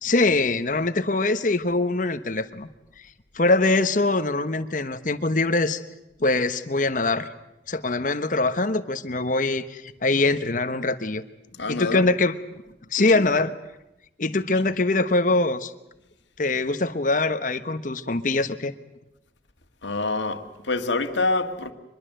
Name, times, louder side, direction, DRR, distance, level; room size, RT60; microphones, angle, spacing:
voice 1, 0.0-2.7 3.3-5.8 6.2-7.3 7.7-11.2 11.7-12.3 12.9-13.5 14.2-15.7 16.4-18.7, left 2 dB, 45° left, 1.1 m, -23 dB
voice 2, 11.6-12.1 13.0-13.3 14.3-14.7 19.8-21.7, left 3 dB, 85° left, 1.8 m, -27 dB
24.5 x 21.5 x 7.9 m
head